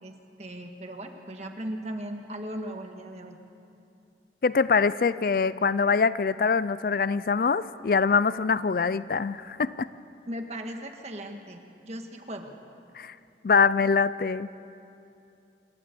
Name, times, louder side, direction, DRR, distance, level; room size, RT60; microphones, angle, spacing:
voice 1, 0.0-3.4 10.3-12.5, right 1 dB, 40° right, 4 dB, 1.6 m, -38 dB
voice 2, 4.4-9.9 13.0-13.1 13.4-14.5, left 5 dB, 50° left, 16 dB, 0.4 m, -24 dB
27.5 x 12.0 x 8.4 m, 2.7 s
head